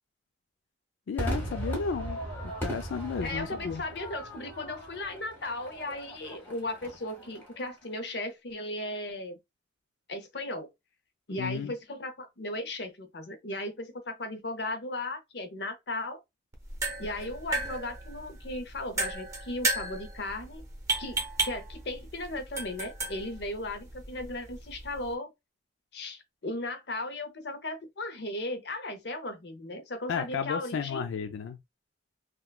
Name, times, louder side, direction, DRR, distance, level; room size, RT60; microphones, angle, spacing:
voice 1, 1.1-2.2 2.6-3.8 11.4-11.7 30.1-31.6, left 6 dB, 85° left, 0.4 m, -33 dB
Crowd / Fireworks, 1.2-7.7, right 1 dB, 10° left, 1.1 m, -38 dB
voice 2, 3.2-9.4 10.1-10.7 11.3-16.2 17.0-20.6 21.0-25.3 25.9-31.1, left 2 dB, 60° left, 0.7 m, -36 dB
sound 1, 16.5-25.1, right 2 dB, 15° right, 0.7 m, -35 dB
3.6 x 2.3 x 2.3 m
head